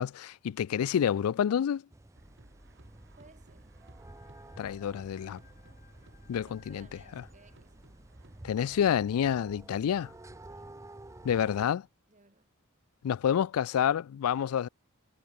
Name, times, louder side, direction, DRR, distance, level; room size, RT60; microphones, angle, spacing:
voice 1, 0.0-1.8 4.6-5.4 6.3-6.9 8.4-10.1 11.2-11.9 13.0-14.7, left 8 dB, 80° left, 0.3 m, -28 dB
sound 1, 1.9-11.7, right 1 dB, 15° right, 0.7 m, -51 dB
sound 2, 2.1-8.9, right 1 dB, 55° right, 3.6 m, -58 dB
voice 2, 3.2-3.8 6.2-7.8 10.5-10.7 12.1-12.5 14.5-14.6, right 3 dB, 35° right, 2.4 m, -60 dB
sound 3, 4.0-8.5, left 6 dB, 40° left, 3.1 m, -65 dB
head